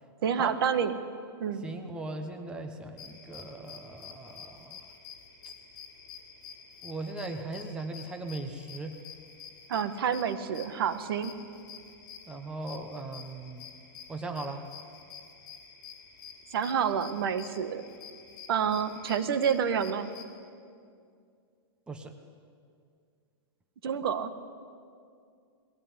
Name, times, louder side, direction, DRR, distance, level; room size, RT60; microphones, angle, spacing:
voice 1, 0.2-0.9 1.4-1.6 9.7-11.3 16.5-17.8 18.5-20.1 23.8-24.3, right 7 dB, 65° right, 11 dB, 1.5 m, -28 dB
voice 2, 1.6-4.8 6.8-9.0 12.3-13.7 14.1-14.7 21.9-22.2, right 2 dB, 5° right, 5 dB, 1.0 m, -38 dB
sound 1, 3.0-20.2, left 7 dB, 50° left, 4.2 m, -49 dB
21.0 x 16.5 x 9.9 m, 2.3 s
supercardioid pair, 170°, 13 cm